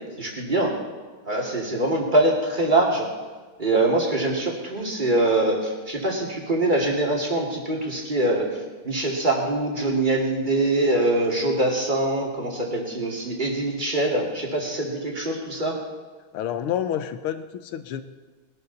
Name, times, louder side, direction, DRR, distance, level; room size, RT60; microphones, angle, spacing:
voice 1, 0.2-0.7 1.3-3.1 3.6-8.5 8.8-15.8, right 2 dB, 20° right, -1 dB, 2.6 m, -23 dB
voice 2, 16.3-18.0, left 10 dB, 80° left, 11 dB, 1.7 m, -28 dB
20.5 x 12.0 x 4.1 m, 1.4 s
omnidirectional pair, 2.4 m